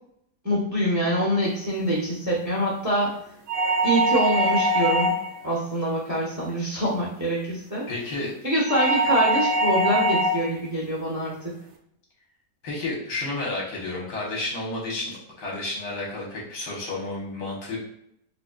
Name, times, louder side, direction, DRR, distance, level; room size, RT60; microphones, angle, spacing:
voice 1, 0.4-3.2 3.8-5.1 5.4-7.8 8.4-11.5, equal, 20° right, -4 dB, 0.5 m, -25 dB
sound 1, 3.5-5.4 8.7-10.5, right 1 dB, 85° right, 1.2 m, -22 dB
voice 2, 7.9-8.3 12.6-17.8, left 2 dB, 80° left, -3 dB, 1.7 m, -31 dB
4.2 x 2.7 x 2.3 m, 0.72 s
omnidirectional pair, 1.8 m